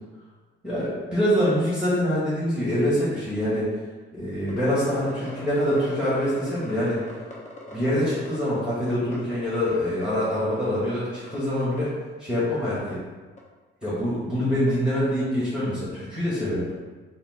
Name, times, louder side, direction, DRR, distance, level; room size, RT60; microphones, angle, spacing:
voice 1, 0.6-3.7 4.1-7.0 7.7-11.9 12.2-13.0 13.8-16.7, equal, 5° right, -10 dB, 1.4 m, -25 dB
sound 1, 4.5-8.6 8.9-10.1 10.3-10.9 11.2-11.9 12.4-12.5 12.7-12.9 13.4-13.5 13.8-13.9 14.7-14.8, left 1 dB, 35° left, 1.0 m, -42 dB
4.1 x 2.1 x 4.1 m, 1.3 s
cardioid pair, 90°, 20 cm